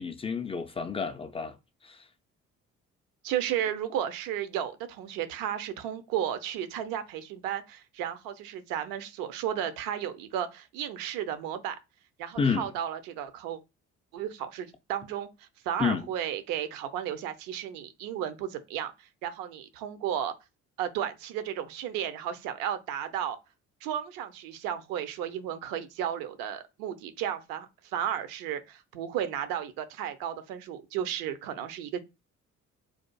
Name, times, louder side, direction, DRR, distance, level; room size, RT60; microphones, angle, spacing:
voice 1, 0.0-1.6 1.8-2.1 12.4-12.7 15.8-16.1, left 5 dB, 15° left, 0.3 m, -30 dB
voice 2, 3.2-11.8 12.2-13.6 14.1-20.3 20.8-23.4 23.8-32.0, right 10 dB, 60° right, 0.7 m, -33 dB
4.1 x 2.4 x 2.3 m
figure-of-eight pair, 45°, 39 cm